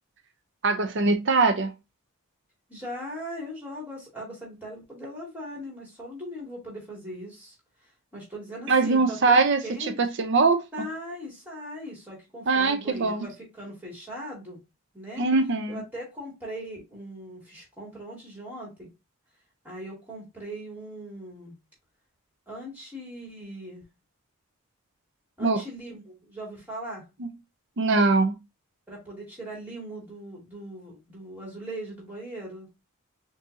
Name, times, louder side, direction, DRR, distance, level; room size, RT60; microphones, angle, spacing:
voice 1, 0.6-1.7 8.7-9.6 10.0-10.6 12.5-13.3 15.2-15.8 25.4-25.6 27.2-27.3 27.8-28.3, right 3 dB, 50° right, 0.5 m, -22 dB
voice 2, 2.7-7.6 7.8-10.0 10.7-14.6 14.9-15.2 15.7-18.9 19.6-21.6 22.5-23.9 25.4-27.1 28.9-32.7, equal, 10° right, 2.2 m, -39 dB
6.1 x 2.7 x 2.6 m
head